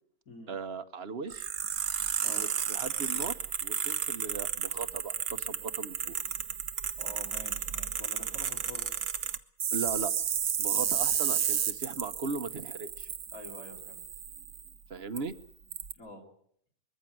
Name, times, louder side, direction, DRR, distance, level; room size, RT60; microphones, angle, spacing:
voice 1, 0.5-1.5 2.3-6.1 9.7-10.1 10.6-13.1 14.9-15.3, right 4 dB, 45° right, 10 dB, 1.2 m, -38 dB
sound 1, 1.3-14.7 15.2-15.3 15.7-15.9, right 8 dB, 70° right, 1.5 m, -32 dB
voice 2, 7.0-8.9 10.7-10.9 13.3-14.0 15.9-16.2, left 2 dB, 60° left, -1 dB, 3.7 m, -47 dB
22.5 x 14.5 x 9.2 m, 0.68 s
omnidirectional pair, 1.6 m